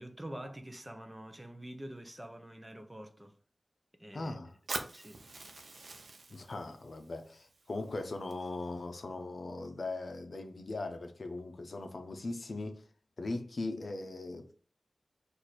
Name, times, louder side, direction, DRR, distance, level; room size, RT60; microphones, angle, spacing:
voice 1, 0.0-3.3 4.0-4.4 4.9-5.2, right 1 dB, 15° right, 0.6 m, -46 dB
voice 2, 4.1-4.5 6.3-12.8 13.2-14.5, left 2 dB, 60° left, 0.7 m, -39 dB
Fire, 4.7-8.7, right 3 dB, 75° right, 0.7 m, -45 dB
4.6 x 2.6 x 4.2 m
wide cardioid pair, 95°, 0 cm